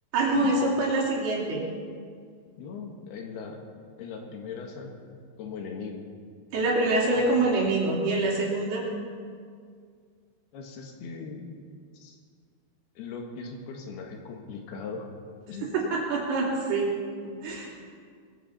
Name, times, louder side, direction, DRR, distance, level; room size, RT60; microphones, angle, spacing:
voice 1, 0.1-1.6 6.5-8.9 15.6-16.9 17.4-17.8, right 2 dB, 85° right, -3 dB, 4.9 m, -25 dB
voice 2, 2.6-3.6 4.0-5.0 5.4-6.0 7.1-7.3 10.5-11.5 11.9-12.2 13.0-15.1 15.5-15.7, left 5 dB, 85° left, 2 dB, 3.6 m, -39 dB
21.0 x 15.0 x 4.2 m, 2.1 s
omnidirectional pair, 4.5 m